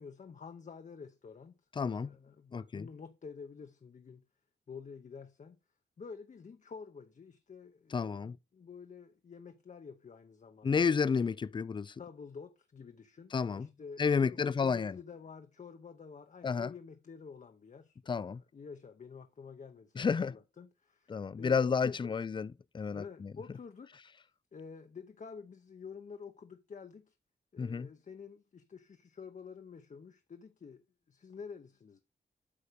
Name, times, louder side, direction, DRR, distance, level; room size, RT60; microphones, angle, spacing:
voice 1, 0.0-1.6 1.8-4.2 4.7-5.6 6.0-10.9 12.0-22.3 22.9-23.9 24.5-27.1 27.5-32.0, left 5 dB, 45° left, 0.7 m, -49 dB
voice 2, 1.8-2.1 2.5-2.9 7.9-8.4 10.6-11.9 13.3-13.7 14.0-15.0 16.4-16.7 18.1-18.4 20.0-20.4 21.1-23.3 27.6-27.9, left 5 dB, 25° left, 0.3 m, -31 dB
8.5 x 5.3 x 5.0 m
wide cardioid pair, 105°, 18 cm